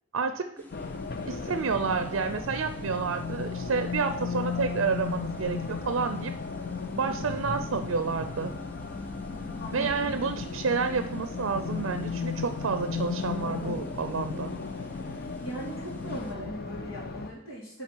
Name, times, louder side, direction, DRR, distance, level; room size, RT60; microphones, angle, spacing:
voice 1, 0.1-0.6 1.3-6.3 7.0-8.5 9.7-14.5, right 5 dB, 85° right, 9 dB, 0.5 m, -29 dB
sound 1, 0.6-16.3, left 2 dB, 10° left, 0.6 m, -48 dB
Race car auto racing, 0.7-17.3, left 4 dB, 45° left, 0.5 m, -35 dB
voice 2, 9.6-10.1 15.4-17.8, equal, 90° left, -8 dB, 2.6 m, -39 dB
9.9 x 4.0 x 4.6 m, 0.88 s
head